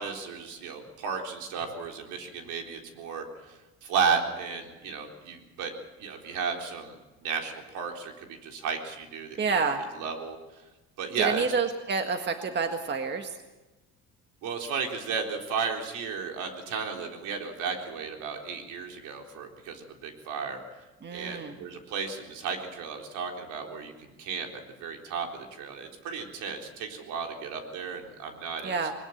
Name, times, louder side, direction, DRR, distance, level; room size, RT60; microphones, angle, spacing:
voice 1, 0.0-3.5 3.8-5.7 6.0-9.4 10.0-10.4 11.0-11.4 14.4-20.6 21.1-24.5 24.8-28.8, right 5 dB, 75° right, 3 dB, 4.0 m, -33 dB
voice 2, 9.4-9.8 11.2-13.3 21.0-21.5 28.6-28.9, right 5 dB, 35° right, 6 dB, 1.7 m, -28 dB
21.0 x 20.5 x 7.3 m, 1.1 s
cardioid pair, 130°, 30 cm